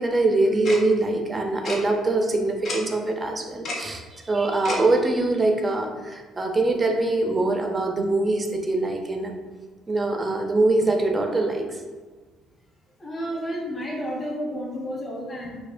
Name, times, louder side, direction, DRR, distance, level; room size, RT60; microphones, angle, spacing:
voice 1, 0.0-9.3 9.9-11.8, right 2 dB, 25° right, 3 dB, 0.5 m, -23 dB
Tick-tock, 0.6-0.8 1.6-1.8 2.6-2.8 3.6-3.8 4.6-4.8, left 2 dB, 60° left, 0.7 m, -29 dB
voice 2, 13.0-15.6, equal, 25° left, -4 dB, 1.2 m, -31 dB
4.2 x 2.4 x 2.5 m, 1.3 s
cardioid pair, 95°, 0 cm